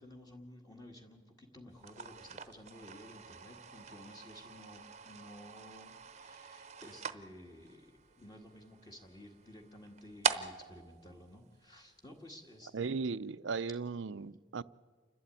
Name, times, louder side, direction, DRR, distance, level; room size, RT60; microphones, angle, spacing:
voice 1, 0.0-13.0, left 1 dB, 20° left, 1.8 m, -54 dB
sound 1, 1.8-12.1, right 6 dB, 35° right, 0.8 m, -43 dB
voice 2, 12.7-14.6, right 4 dB, 75° right, 0.5 m, -37 dB
28.5 x 12.5 x 9.1 m
head